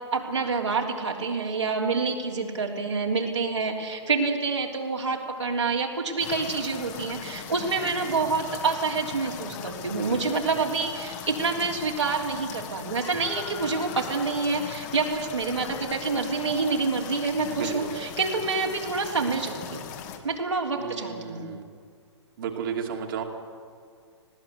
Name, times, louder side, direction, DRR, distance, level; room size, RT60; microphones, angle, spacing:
voice 1, 0.1-19.8 20.2-21.5, right 4 dB, 70° right, -1 dB, 3.5 m, -27 dB
sound 1, 6.2-20.2, left 8 dB, 35° left, 2.1 m, -39 dB
voice 2, 7.8-8.1 17.5-17.9 20.8-21.6 22.4-23.2, right 7 dB, 45° right, 1 dB, 2.7 m, -33 dB
20.0 x 17.5 x 8.3 m, 2.1 s
figure-of-eight pair, 120°, 15 cm